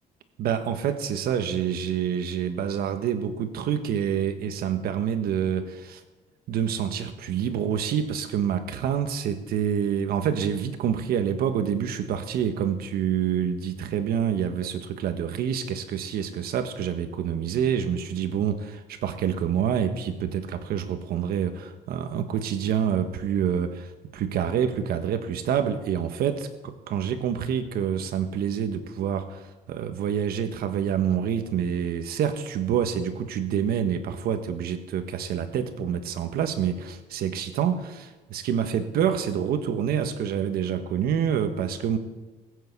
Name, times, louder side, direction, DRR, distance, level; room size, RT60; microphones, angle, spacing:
voice 1, 0.4-6.0 6.5-42.0, right 8 dB, 70° right, 8 dB, 1.4 m, -27 dB
19.5 x 8.3 x 8.3 m, 1.2 s
cardioid pair, 175°, 16 cm